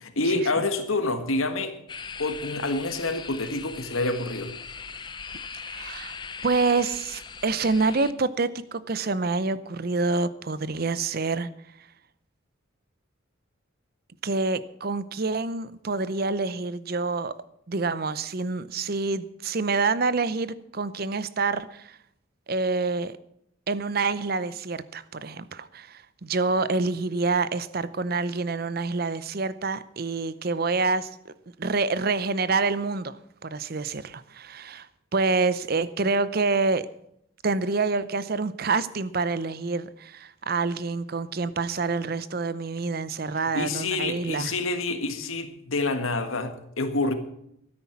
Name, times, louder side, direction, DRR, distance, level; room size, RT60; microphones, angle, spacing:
voice 1, 0.0-1.7 2.2-4.5 43.5-47.1, left 2 dB, 90° left, 8 dB, 1.7 m, -27 dB
sound 1, 1.9-8.1, left 5 dB, 20° left, 0.6 m, -40 dB
voice 2, 5.7-6.2 6.4-11.5 14.2-17.3 17.7-22.0 22.5-23.2 23.7-31.3 31.6-34.9 35.1-36.9 37.4-44.5, right 3 dB, 50° right, 15 dB, 0.6 m, -27 dB
13.0 x 9.9 x 7.2 m, 0.74 s
head